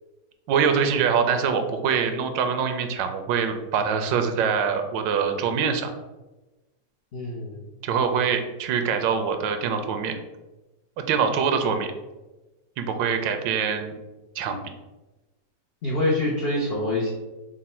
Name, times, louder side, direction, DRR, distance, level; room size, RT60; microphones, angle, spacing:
voice 1, 0.5-5.9 7.8-10.2 11.0-11.9 12.8-13.9 14.4-14.6, right 6 dB, 85° right, 6 dB, 1.3 m, -24 dB
voice 2, 7.1-7.7 15.8-17.1, left 1 dB, 75° left, -3 dB, 0.5 m, -25 dB
4.9 x 2.1 x 4.2 m, 1.1 s
omnidirectional pair, 1.9 m